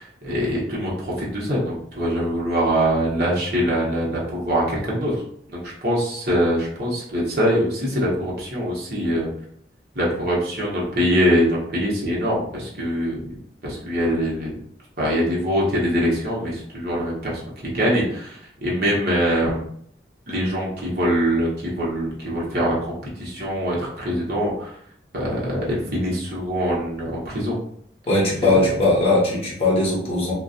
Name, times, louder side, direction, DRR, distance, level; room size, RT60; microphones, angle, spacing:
voice 1, 0.0-5.2 5.5-9.3 9.9-13.2 13.6-14.5 15.0-19.6 20.3-24.7 25.1-27.5 28.4-28.7, equal, 60° right, -5 dB, 0.8 m, -23 dB
voice 2, 28.1-30.3, left 2 dB, 30° left, -5 dB, 0.9 m, -19 dB
2.4 x 2.3 x 2.6 m, 0.65 s
head